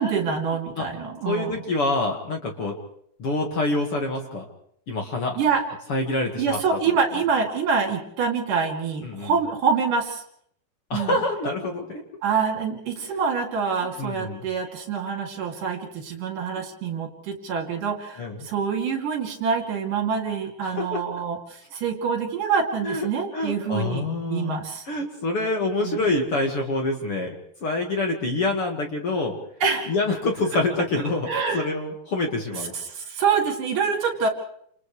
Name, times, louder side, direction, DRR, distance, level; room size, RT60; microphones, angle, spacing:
voice 1, 0.0-1.6 5.4-5.6 6.4-10.2 10.9-11.2 12.2-24.9 25.8-26.0 29.6-29.9 31.3-31.7 32.7-34.3, right 6 dB, 65° right, 2 dB, 4.3 m, -26 dB
voice 2, 1.2-2.7 3.2-4.5 4.9-5.4 5.9-6.8 9.0-9.3 10.9-12.0 13.8-14.4 16.6-16.7 18.2-18.4 20.6-21.0 22.8-23.1 23.3-24.6 24.9-27.4 27.6-29.3 29.9-31.3 31.5-32.7, left 2 dB, 45° left, 2 dB, 2.5 m, -26 dB
29.5 x 28.0 x 3.3 m, 0.68 s
omnidirectional pair, 4.1 m